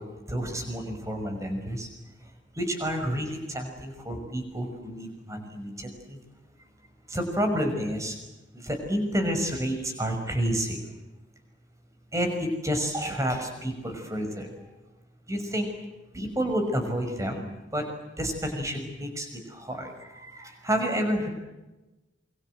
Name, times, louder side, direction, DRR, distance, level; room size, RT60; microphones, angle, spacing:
voice 1, 0.0-1.9 2.2-6.2 7.1-8.2 8.5-10.9 12.1-14.7 15.3-15.7 16.1-17.9 18.2-21.3, equal, 15° right, 5 dB, 6.0 m, -30 dB
27.5 x 25.0 x 7.8 m, 1.0 s
head